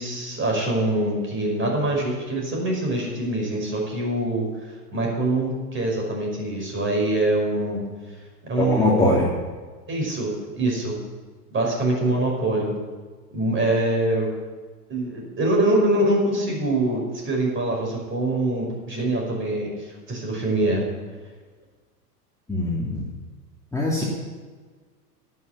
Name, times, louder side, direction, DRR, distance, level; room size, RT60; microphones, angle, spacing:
voice 1, 0.0-4.5 4.9-7.8 8.4-9.1 9.9-11.0 11.5-12.7 13.3-14.3 14.9-20.8, right 1 dB, 25° right, 0 dB, 5.5 m, -24 dB
voice 2, 8.6-9.3 22.5-23.0 23.7-24.0, left 2 dB, 5° left, -5 dB, 2.6 m, -22 dB
11.0 x 9.7 x 8.2 m, 1.4 s
hypercardioid pair, 95°, 48 cm